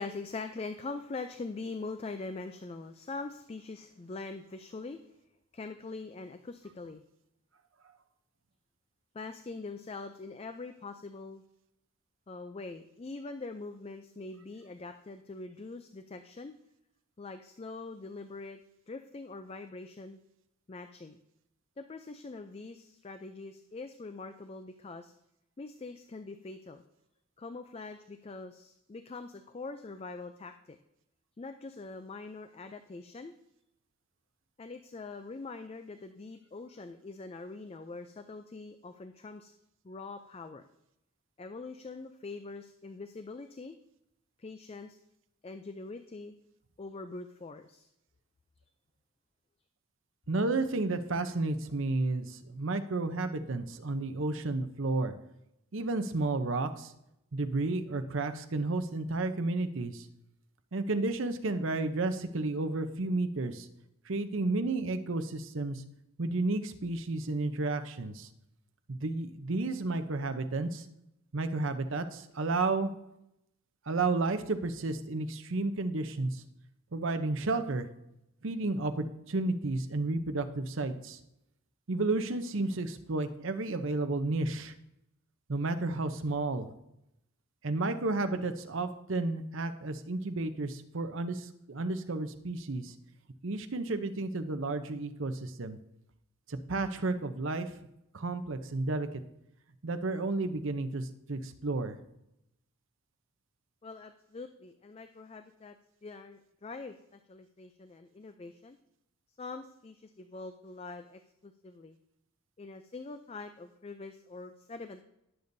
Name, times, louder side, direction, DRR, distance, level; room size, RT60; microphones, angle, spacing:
voice 1, 0.0-5.0 5.5-7.0 9.1-11.4 12.3-16.5 17.2-18.6 18.9-20.2 20.7-21.2 21.8-25.1 25.6-26.8 27.4-30.8 31.4-33.3 34.6-39.5 39.8-40.6 41.4-43.7 44.4-45.0 45.4-46.3 46.8-47.9 103.8-105.8 106.0-108.8 109.4-112.0 112.6-115.0, left 3 dB, 25° left, 8 dB, 0.4 m, -43 dB
voice 2, 50.3-55.1 55.7-56.9 57.3-60.1 60.7-63.7 64.1-65.8 66.2-68.3 68.9-70.8 71.3-72.9 73.9-76.3 76.9-77.9 78.4-81.2 81.9-84.7 85.5-86.7 87.6-92.9 93.4-95.8 96.5-97.7 98.1-99.1 99.8-101.9, right 2 dB, 60° right, 8 dB, 0.7 m, -32 dB
18.5 x 6.9 x 2.7 m, 0.84 s
head